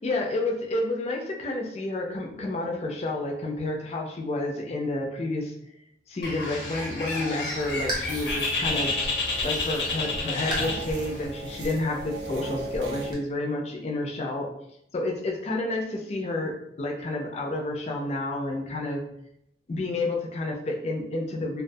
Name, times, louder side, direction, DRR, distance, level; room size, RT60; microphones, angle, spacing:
voice 1, 0.0-5.5 6.1-8.9 9.4-14.5 14.9-19.0 19.7-21.6, left 2 dB, 35° left, 0 dB, 0.4 m, -30 dB
Bird, 6.2-11.3, left 3 dB, 80° left, 0.7 m, -30 dB
sound 1, 7.6-13.1, equal, 25° right, 0.5 m, -38 dB
sound 2, 8.0-13.1, right 3 dB, 85° right, 0.4 m, -39 dB
2.3 x 2.2 x 2.6 m, 0.75 s
head